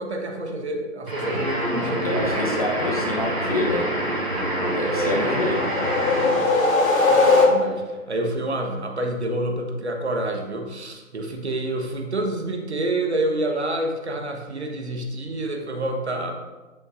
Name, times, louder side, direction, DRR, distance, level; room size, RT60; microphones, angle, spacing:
voice 1, 0.0-2.3 4.8-5.6 6.3-6.8 7.1-16.3, right 1 dB, 55° right, 3 dB, 1.4 m, -28 dB
sound 1, 1.1-6.6, right 1 dB, 85° right, 2.6 m, -26 dB
voice 2, 2.0-3.8 4.7-5.6, left 2 dB, 30° left, 0 dB, 1.0 m, -26 dB
sound 2, 4.9-8.0, left 3 dB, 85° left, 1.8 m, -20 dB
9.5 x 8.1 x 2.6 m, 1.2 s
figure-of-eight pair, 160°, 39 cm